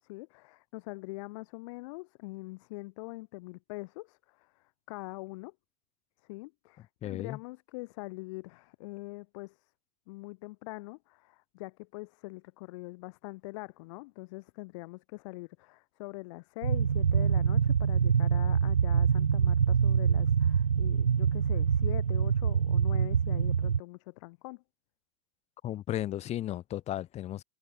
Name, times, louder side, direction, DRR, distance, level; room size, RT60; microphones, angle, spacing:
voice 1, 0.0-5.5 6.3-9.7 10.1-24.6, left 24 dB, 55° left, 3.7 m, -43 dB
voice 2, 7.0-7.4 25.6-27.4, left 13 dB, 35° left, 2.7 m, -34 dB
sound 1, 16.6-23.8, right 7 dB, 85° right, 1.2 m, -25 dB
hypercardioid pair, 95°, 19 cm